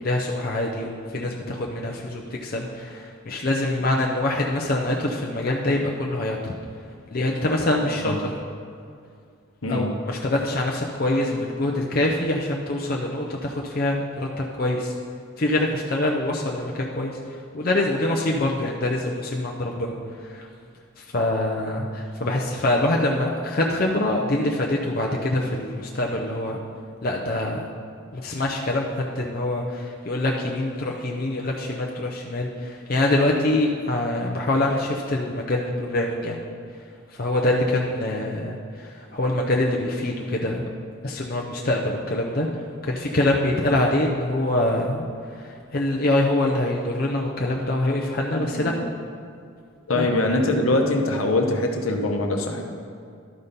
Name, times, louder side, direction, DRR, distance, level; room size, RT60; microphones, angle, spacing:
voice 1, 0.0-6.5 7.1-8.4 9.7-14.9 15.4-17.2 17.5-20.0 20.3-20.5 21.0-26.6 27.0-27.6 28.1-36.4 37.2-40.7 41.0-42.5 42.8-45.1 45.4-48.7 49.9-50.2, left 1 dB, 45° left, -1 dB, 0.6 m, -25 dB
voice 2, 7.8-8.2 9.6-10.0 48.5-48.9 49.9-52.7, left 2 dB, 70° left, 2 dB, 0.9 m, -23 dB
12.5 x 4.2 x 5.2 m, 2.3 s
head